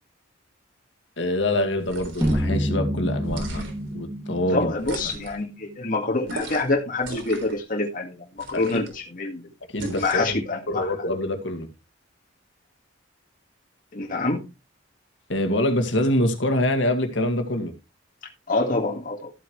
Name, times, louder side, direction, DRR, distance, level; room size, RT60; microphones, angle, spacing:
voice 1, 1.2-3.7 3.9-4.7 8.5-8.8 9.7-10.4 10.7-11.7 15.3-17.7, left 1 dB, 65° left, 2.0 m, -25 dB
sound 1, 1.8-2.5 3.2-3.9 4.8-5.4 6.3-6.7 7.0-7.6 8.4-9.0 9.8-10.3, right 2 dB, 75° right, 3.8 m, -36 dB
sound 2, 2.2-6.6, equal, 15° right, 2.3 m, -29 dB
voice 2, 4.5-9.4 10.0-10.9 13.9-14.5 18.5-19.3, left 3 dB, 45° left, 1.8 m, -26 dB
13.5 x 8.0 x 3.2 m
head